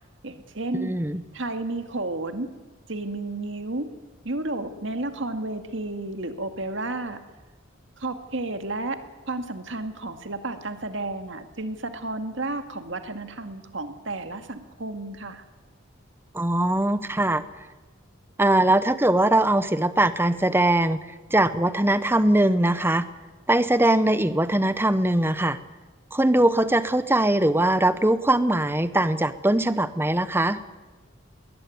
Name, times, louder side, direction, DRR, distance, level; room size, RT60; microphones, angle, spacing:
voice 1, 0.2-0.9 1.3-2.5 2.9-3.9 4.2-7.2 8.0-9.0 9.3-15.4, right 2 dB, 60° right, 7 dB, 2.1 m, -32 dB
voice 2, 0.8-1.2 16.3-17.4 18.4-21.0 21.3-23.1 23.5-25.6 26.1-30.6, right 1 dB, 10° right, 13 dB, 0.9 m, -21 dB
21.0 x 19.5 x 9.5 m, 1.2 s
head